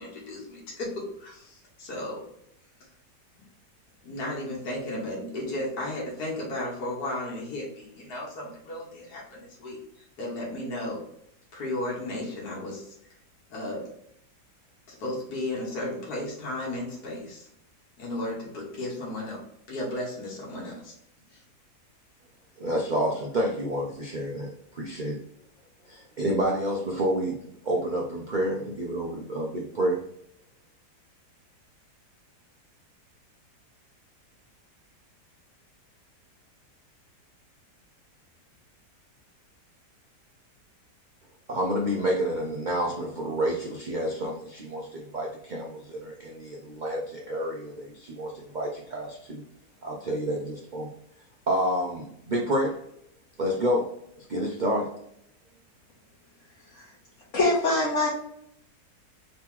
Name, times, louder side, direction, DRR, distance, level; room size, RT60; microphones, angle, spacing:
voice 1, 0.0-2.2 4.0-9.8 10.2-11.0 11.5-12.9 13.5-13.9 14.9-17.5 18.0-19.4 19.7-21.0 21.3-21.4, left 1 dB, 65° left, -4 dB, 1.8 m, -34 dB
voice 2, 22.6-25.2 25.9-27.4 27.6-30.0 41.5-49.4 49.8-50.9 51.5-52.8 53.4-53.9 54.3-54.9, equal, 85° right, -1 dB, 0.4 m, -29 dB
voice 3, 57.3-58.1, left 2 dB, 50° left, -5 dB, 1.3 m, -23 dB
3.9 x 3.0 x 3.6 m, 0.72 s
omnidirectional pair, 1.8 m